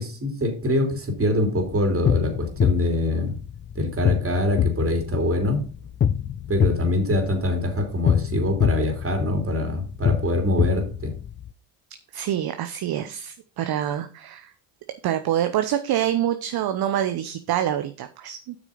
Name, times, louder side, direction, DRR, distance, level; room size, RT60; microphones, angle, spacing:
voice 1, 0.0-3.3 3.7-5.6 6.5-11.1, left 1 dB, 25° right, 4 dB, 3.2 m, -24 dB
sound 1, 1.6-11.5, left 8 dB, 25° left, 0.5 m, -26 dB
voice 2, 12.1-14.5 15.0-18.6, right 11 dB, 50° right, 9 dB, 0.9 m, -26 dB
8.2 x 6.1 x 5.1 m, 0.37 s
hypercardioid pair, 70°, 49 cm